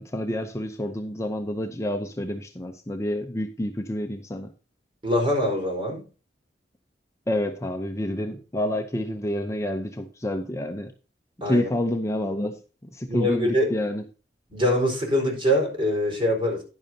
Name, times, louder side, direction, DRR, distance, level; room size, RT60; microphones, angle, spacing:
voice 1, 0.0-4.5 7.3-10.9 11.4-12.6 12.9-14.0, left 1 dB, 15° left, 0.7 m, -28 dB
voice 2, 5.0-6.1 11.4-11.7 13.1-13.7 14.5-16.6, equal, 30° right, 4.6 m, -23 dB
11.0 x 10.5 x 2.8 m
head